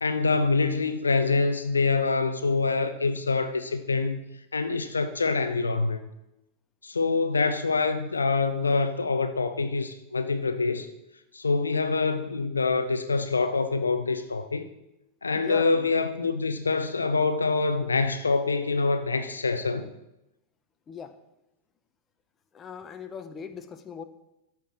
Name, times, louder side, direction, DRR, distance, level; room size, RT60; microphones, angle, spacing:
voice 1, 0.0-4.2 4.5-6.1 6.8-10.9 11.3-14.6 15.2-19.9, left 4 dB, 75° left, 0.7 m, -25 dB
voice 2, 15.3-15.9 20.9-21.1 22.5-24.0, left 7 dB, 25° left, 0.9 m, -39 dB
13.0 x 4.7 x 7.4 m
figure-of-eight pair, 90°, 0 cm